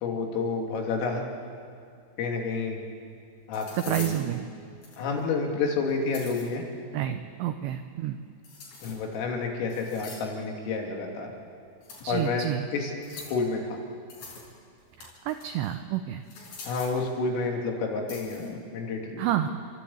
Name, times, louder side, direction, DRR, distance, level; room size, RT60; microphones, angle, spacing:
voice 1, 0.0-1.3 2.2-2.8 3.5-4.2 5.0-6.6 8.8-11.3 12.1-13.8 16.6-19.3, left 4 dB, 80° left, 1 dB, 5.2 m, -30 dB
sound 1, 2.6-2.7 3.5-4.2 4.8-5.2 5.9-6.5 8.4-9.1 9.7-10.4 11.8-12.3 13.0-13.4 14.1-14.5 14.8-15.7 16.2-17.0 18.1-18.5, left 4 dB, 60° left, 6.9 m, -44 dB
voice 2, 3.7-4.5 6.9-8.2 12.0-12.7 15.0-16.2 19.2-19.5, right 12 dB, 85° right, 8 dB, 2.5 m, -29 dB
29.5 x 13.5 x 8.6 m, 2.3 s
omnidirectional pair, 5.9 m